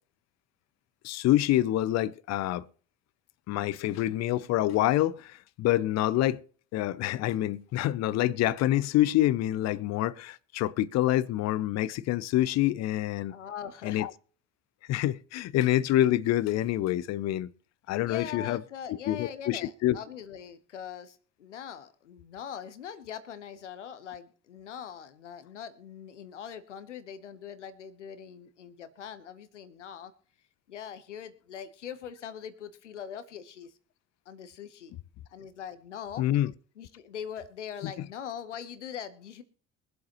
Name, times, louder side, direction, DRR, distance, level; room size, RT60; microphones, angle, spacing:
voice 1, 1.0-2.7 3.5-6.4 6.7-13.4 13.8-14.1 14.9-17.5 17.9-18.6 19.1-20.0 36.2-36.5 37.8-37.9, left 14 dB, 50° left, 0.6 m, -26 dB
voice 2, 13.3-14.0 18.1-30.1 30.7-33.7 34.3-34.9 35.3-36.2 36.8-39.4, left 8 dB, 85° left, 1.0 m, -42 dB
23.0 x 7.8 x 3.0 m
figure-of-eight pair, 55°, 35 cm